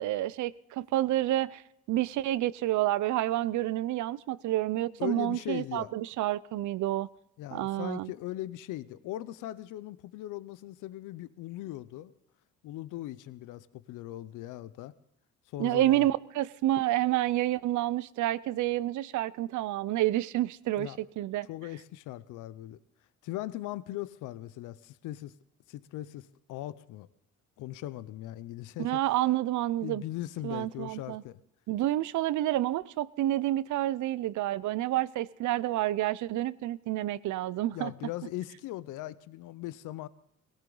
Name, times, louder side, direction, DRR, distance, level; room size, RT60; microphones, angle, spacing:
voice 1, 0.0-1.6 1.9-7.1 7.5-8.1 15.6-21.5 28.8-30.0 30.4-31.2 31.7-37.9, right 14 dB, 75° right, 0.5 m, -29 dB
voice 2, 5.0-5.9 7.4-12.1 12.6-14.9 15.5-16.1 20.8-21.0 21.4-22.8 23.2-25.4 25.7-27.1 27.6-29.0 29.8-31.4 37.7-40.1, left 15 dB, 90° left, 0.6 m, -39 dB
18.5 x 17.5 x 3.9 m
cardioid pair, 90°, 30 cm